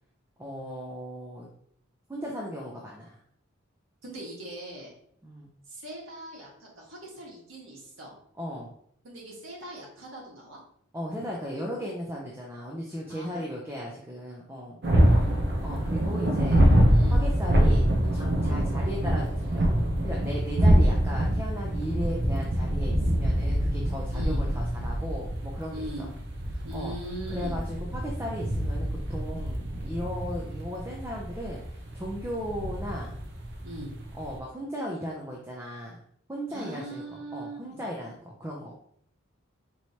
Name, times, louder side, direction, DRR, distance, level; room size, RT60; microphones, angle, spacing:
voice 1, 0.4-1.5 2.1-3.2 5.2-5.5 8.4-8.7 10.9-14.8 15.6-16.6 17.1-19.7 20.0-25.8 26.5-26.9 27.3-27.6 27.9-33.2 34.2-36.0 36.3-37.0 37.3-38.7, equal, 10° right, -2 dB, 0.5 m, -36 dB
voice 2, 4.0-4.9 5.7-8.2 9.0-10.6 13.1-13.5 15.0-15.3 16.9-17.2 24.1-24.4 25.7-26.1 26.6-27.6 33.6-33.9 36.5-37.8, right 1 dB, 75° right, -3 dB, 1.4 m, -41 dB
sound 1, 14.8-34.4, equal, 55° right, 0.6 m, -25 dB
4.6 x 3.0 x 2.7 m, 0.66 s
head